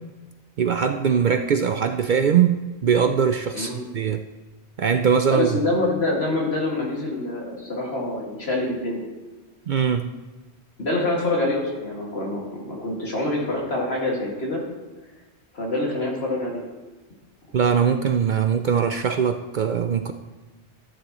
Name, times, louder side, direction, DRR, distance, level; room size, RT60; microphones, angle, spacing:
voice 1, 0.6-4.2 4.8-5.5 9.7-10.1 17.5-20.1, right 7 dB, 55° right, 7 dB, 0.6 m, -21 dB
voice 2, 5.3-9.0 10.8-14.6 15.5-16.6, left 2 dB, 65° left, -1 dB, 2.4 m, -26 dB
13.0 x 11.0 x 3.0 m, 1.2 s
omnidirectional pair, 1.1 m